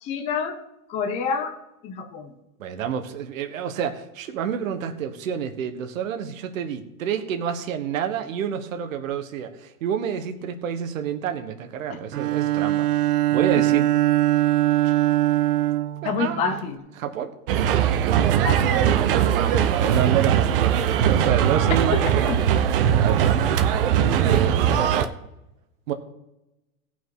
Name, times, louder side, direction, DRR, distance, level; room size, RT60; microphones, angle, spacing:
voice 1, 0.0-0.6 0.9-1.6 1.8-2.3 11.9-12.0 13.5-13.6 16.0-16.8 18.4-19.0 21.9-22.5, left 5 dB, 15° left, 5 dB, 0.7 m, -28 dB
voice 2, 2.6-13.9 14.8-15.0 16.0-16.6 17.0-17.3 19.1-22.5 22.9-23.5 24.2-24.6 25.9-26.0, right 8 dB, 60° right, 7 dB, 1.5 m, -29 dB
Bowed string instrument, 12.1-16.7, right 14 dB, 85° right, 0.8 m, -22 dB
sound 1, 17.5-25.1, right 9 dB, 40° right, 0.8 m, -20 dB
16.5 x 6.1 x 4.9 m, 0.92 s
hypercardioid pair, 155°, 44 cm